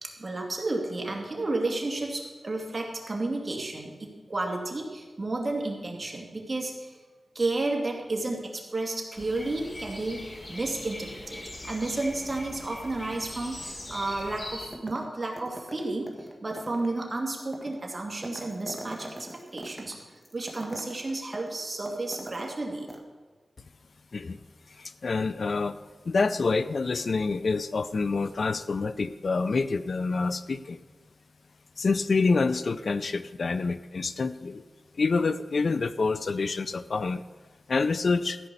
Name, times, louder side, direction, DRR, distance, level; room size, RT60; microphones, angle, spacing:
voice 1, 0.0-6.9 7.3-22.9, right 2 dB, 35° right, 0 dB, 2.4 m, -32 dB
sound 1, 9.1-14.7, left 1 dB, 40° left, 2.1 m, -41 dB
sound 2, 14.7-15.1 15.4-22.6 22.9-23.0, right 1 dB, 10° right, 1.6 m, -43 dB
voice 2, 24.8-25.8 26.1-30.8 31.8-34.6 35.0-37.2 37.7-38.4, left 4 dB, 60° left, 13 dB, 0.4 m, -27 dB
14.5 x 5.4 x 8.3 m, 1.4 s
wide cardioid pair, 85°, 0 cm